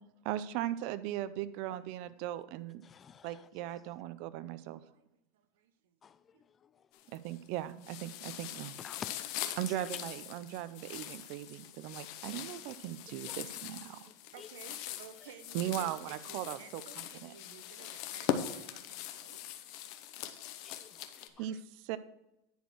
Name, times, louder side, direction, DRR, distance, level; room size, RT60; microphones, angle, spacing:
voice 1, 0.2-2.8 3.2-4.8 7.1-8.7 9.6-14.1 15.5-17.3 21.4-22.0, right 13 dB, 55° right, 0.5 m, -38 dB
voice 2, 2.8-3.4 6.0-6.8 8.8-9.8 13.3-13.4 14.4-14.5 20.6-21.4, left 7 dB, 25° left, 0.3 m, -51 dB
voice 3, 4.0-5.1 5.3-6.0 6.3-6.4 14.2-19.6, right 8 dB, 85° right, 0.9 m, -56 dB
sound 1, 6.9-7.5 7.8-21.3, left 11 dB, 55° left, 0.8 m, -42 dB
10.5 x 4.4 x 6.0 m
supercardioid pair, 145°, 0 cm